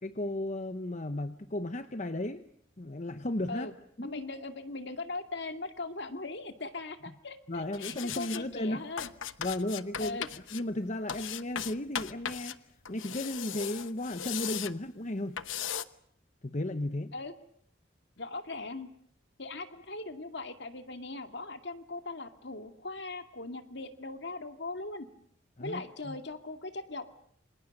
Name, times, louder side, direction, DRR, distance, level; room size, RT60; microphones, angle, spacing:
voice 1, 0.0-2.4 2.8-3.7 4.0-4.2 7.5-8.9 9.4-10.2 10.5-12.6 12.9-15.4 16.4-17.1 25.6-26.2, left 1 dB, 35° left, 9 dB, 1.0 m, -34 dB
voice 2, 4.0-9.1 10.0-10.3 17.1-17.3 18.2-18.9 19.4-25.1 25.6-27.2, left 3 dB, 60° left, 7 dB, 2.3 m, -40 dB
sound 1, 7.7-8.4 9.0-10.6 11.1-12.6 12.8-14.7 15.4-15.8, left 9 dB, 80° left, 1.0 m, -37 dB
28.0 x 26.5 x 6.6 m, 0.67 s
head